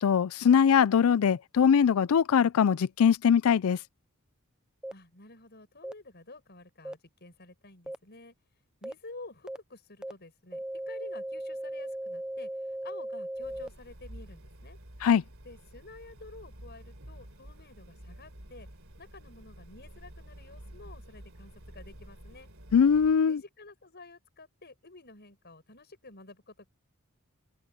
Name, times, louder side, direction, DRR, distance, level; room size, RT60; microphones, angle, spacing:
voice 1, 0.0-3.8 15.0-15.2 22.7-23.4, left 7 dB, 75° left, 0.4 m, -22 dB
sound 1, 4.8-4.9 5.8-5.9 6.9-7.0 7.9-8.0 8.8-8.9 9.5-9.6 10.0-10.1 10.5-13.7, right 1 dB, 5° right, 0.5 m, -37 dB
voice 2, 4.9-8.3 8.8-14.8 15.4-18.7 19.0-22.5 23.3-26.7, left 2 dB, 50° left, 7.2 m, -50 dB
sound 2, 13.4-23.2, right 1 dB, 65° right, 3.8 m, -50 dB
head